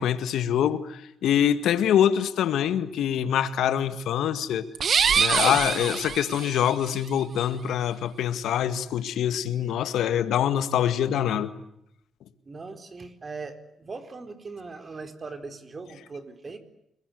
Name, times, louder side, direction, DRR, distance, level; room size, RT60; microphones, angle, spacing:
voice 1, 0.0-4.7 5.2-11.5, left 10 dB, 80° left, 1.9 m, -25 dB
sound 1, 4.7-6.7, right 6 dB, 55° right, 1.7 m, -24 dB
voice 2, 12.4-16.6, right 4 dB, 35° right, 4.4 m, -40 dB
29.5 x 21.5 x 9.6 m
cardioid pair, 90°, 0 cm